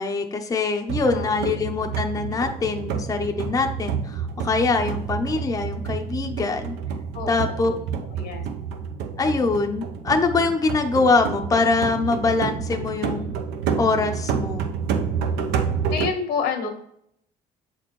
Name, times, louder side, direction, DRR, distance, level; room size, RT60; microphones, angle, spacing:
voice 1, 0.0-6.7 7.3-7.7 9.2-13.3 13.8-14.7, left 4 dB, 20° left, 4 dB, 0.6 m, -23 dB
sound 1, 0.9-16.1, right 6 dB, 85° right, 0.7 m, -29 dB
voice 2, 7.1-7.8 8.1-8.5 15.9-16.7, left 6 dB, 85° left, 5 dB, 1.4 m, -29 dB
7.3 x 4.2 x 3.0 m, 0.71 s
cardioid pair, 110°, 17 cm